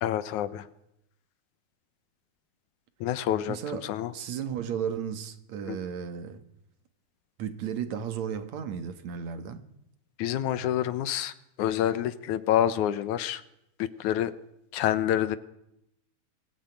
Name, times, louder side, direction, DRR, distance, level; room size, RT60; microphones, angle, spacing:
voice 1, 0.0-0.7 3.0-4.1 5.7-5.8 10.2-13.4 13.8-14.3 14.7-15.4, left 11 dB, 80° left, 2.4 m, -27 dB
voice 2, 3.5-6.4 7.4-9.6, right 8 dB, 65° right, 2.7 m, -34 dB
23.0 x 16.0 x 9.2 m
omnidirectional pair, 3.4 m